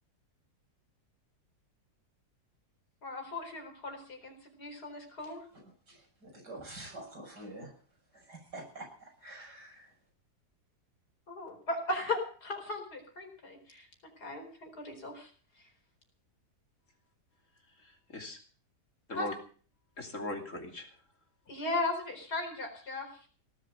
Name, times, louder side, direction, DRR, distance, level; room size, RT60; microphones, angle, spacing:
voice 1, 3.0-5.4 11.3-13.9 14.2-15.3 19.1-19.3 21.5-23.1, left 2 dB, 75° left, 4 dB, 5.0 m, -37 dB
voice 2, 5.9-7.7 8.1-9.9, right 2 dB, 90° right, 1 dB, 7.5 m, -47 dB
voice 3, 17.8-18.4 19.1-19.3 20.0-20.9, left 1 dB, 50° left, 4 dB, 3.3 m, -40 dB
18.0 x 8.0 x 8.9 m, 0.43 s
omnidirectional pair, 1.7 m